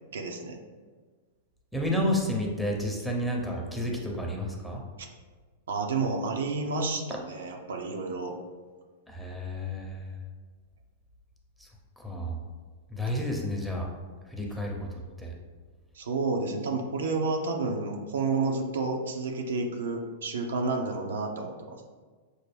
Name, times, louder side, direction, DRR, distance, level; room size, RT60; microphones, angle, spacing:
voice 1, 0.1-0.6 5.7-8.3 15.9-21.8, right 3 dB, 85° right, 2 dB, 0.6 m, -30 dB
voice 2, 1.7-4.8 9.1-10.1 12.0-12.4 12.9-13.9 14.3-14.8 15.2-15.3, left 1 dB, 5° left, -1 dB, 0.8 m, -30 dB
6.1 x 2.1 x 3.4 m, 1.4 s
hypercardioid pair, 115°, 0 cm